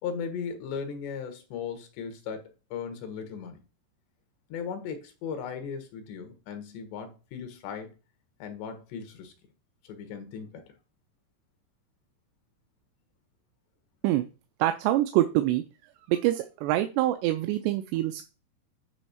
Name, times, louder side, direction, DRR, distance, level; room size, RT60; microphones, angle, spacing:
voice 1, 0.0-3.6 4.5-8.0 8.4-9.3 9.8-10.6, left 6 dB, 90° left, 3.5 m, -37 dB
voice 2, 14.6-15.6 16.1-18.2, right 14 dB, 90° right, 2.7 m, -25 dB
10.0 x 3.5 x 5.6 m
omnidirectional pair, 4.8 m